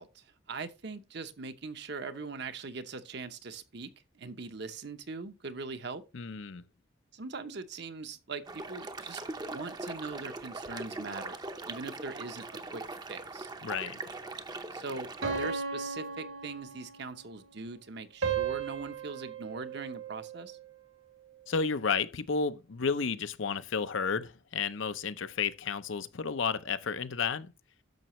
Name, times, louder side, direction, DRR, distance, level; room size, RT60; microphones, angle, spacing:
voice 1, 0.0-6.0 7.1-11.4 11.6-12.8 13.1-13.5 14.7-20.6, right 4 dB, 55° right, 0.8 m, -41 dB
voice 2, 6.1-6.6 13.6-14.0 21.5-27.5, left 5 dB, 70° left, 0.7 m, -32 dB
sound 1, 8.5-15.5, right 2 dB, 20° right, 0.6 m, -41 dB
sound 2, 15.2-17.2 18.2-20.6, right 6 dB, 85° right, 2.3 m, -35 dB
10.5 x 6.8 x 3.1 m
head